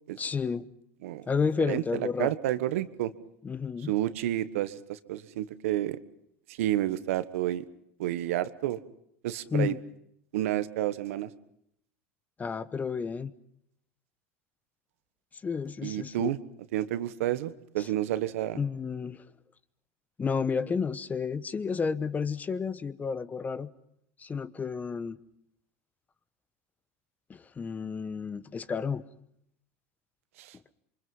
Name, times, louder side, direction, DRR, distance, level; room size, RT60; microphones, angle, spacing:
voice 1, 0.2-0.7 1.3-2.3 3.4-3.9 9.5-9.8 12.4-13.3 15.4-16.3 17.8-17.9 18.5-19.2 20.2-23.7 24.2-25.2 27.3-29.0, left 5 dB, 20° left, 15 dB, 1.1 m, -31 dB
voice 2, 1.7-3.1 3.8-6.0 6.5-7.6 8.0-8.8 9.2-9.7 10.3-11.3 15.8-16.4 16.7-18.6 30.4-30.5, right 13 dB, 75° right, 13 dB, 1.4 m, -30 dB
27.0 x 24.5 x 5.6 m, 0.74 s
hypercardioid pair, 105°, 8 cm